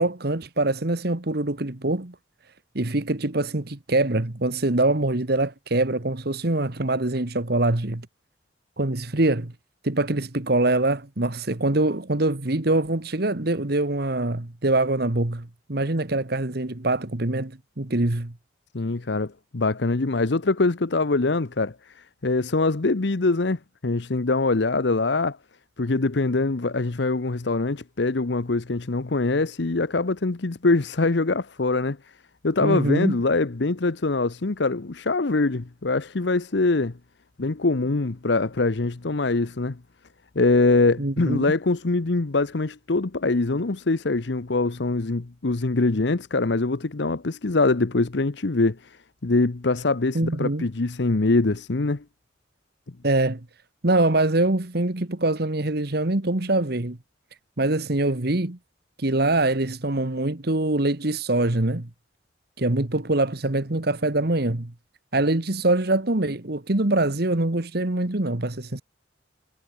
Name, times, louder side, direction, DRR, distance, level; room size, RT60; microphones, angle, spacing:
voice 1, 0.0-2.1 2.7-8.1 8.8-9.5 9.8-18.3 32.6-33.2 41.0-41.4 50.1-50.7 53.0-53.4 53.8-57.0 57.6-58.6 59.0-61.9 62.6-64.7 65.1-68.8, right 2 dB, 55° right, 1.5 m, -24 dB
voice 2, 18.7-25.4 25.8-32.0 32.4-37.0 37.4-39.8 40.3-49.0 49.2-52.0, left 3 dB, 65° left, 0.9 m, -23 dB
head